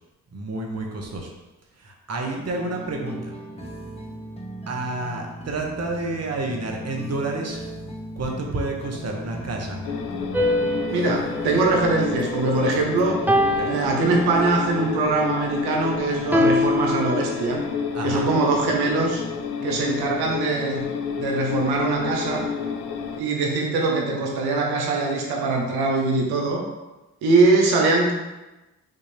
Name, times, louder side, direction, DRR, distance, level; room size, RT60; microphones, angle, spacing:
voice 1, 0.3-1.3 1.8-3.3 4.7-7.6 8.2-9.8 13.6-13.7 17.9-18.3 19.6-19.9, right 2 dB, 45° right, 1 dB, 1.0 m, -30 dB
sound 1, 2.4-14.4, equal, 15° left, 0.9 m, -37 dB
sound 2, 9.8-23.2, left 6 dB, 85° left, 0.5 m, -30 dB
sound 3, 10.3-12.7 13.3-14.8 16.3-17.8, left 1 dB, 5° right, 0.5 m, -25 dB
voice 2, 10.9-13.2 13.6-17.6 18.0-19.2 19.6-20.9 21.2-22.5 23.2-26.6 27.2-28.1, right 3 dB, 85° right, 0 dB, 0.9 m, -22 dB
5.6 x 2.6 x 3.3 m, 1.1 s
supercardioid pair, 55°, 37 cm